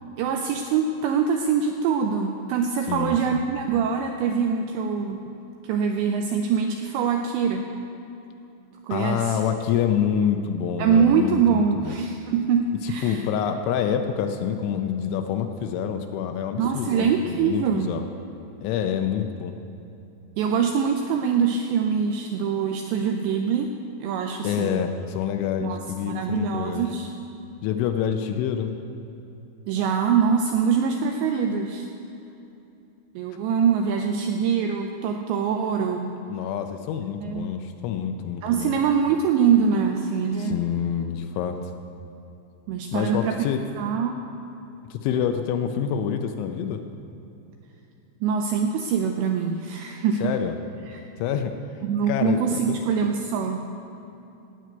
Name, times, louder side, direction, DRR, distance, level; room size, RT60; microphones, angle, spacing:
voice 1, 0.2-5.4 5.6-7.7 8.8-9.4 10.8-13.2 16.6-17.9 20.4-23.7 24.0-24.8 25.6-27.1 29.7-31.9 33.2-36.2 37.2-37.5 38.4-40.6 42.7-43.4 43.8-44.2 48.2-50.4 50.9-51.0 51.8-53.6, right 6 dB, 85° right, 4 dB, 2.5 m, -24 dB
voice 2, 8.9-11.9 12.8-18.0 18.6-19.6 24.4-26.9 27.6-28.7 36.3-38.8 40.4-41.6 42.9-43.6 44.9-46.8 50.2-50.5 51.2-51.5 52.1-52.8, left 8 dB, 80° left, 6 dB, 2.9 m, -27 dB
15.5 x 6.3 x 9.3 m, 2.9 s
omnidirectional pair, 5.8 m